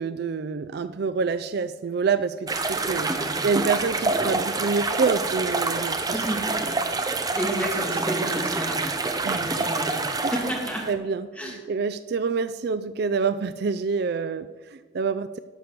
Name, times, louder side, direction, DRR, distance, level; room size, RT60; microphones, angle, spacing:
voice 1, 0.0-3.1 3.4-6.2 9.2-9.7 10.2-10.3 10.9-15.4, right 5 dB, 55° right, 12 dB, 0.4 m, -27 dB
sound 1, 2.5-10.9, right 3 dB, 20° right, 0.6 m, -27 dB
voice 2, 3.1-3.4 6.1-6.5 7.3-8.8 9.3-10.0 10.3-10.9 11.4-11.5, equal, 5° left, -3 dB, 2.6 m, -31 dB
11.5 x 6.9 x 6.0 m, 1.4 s
head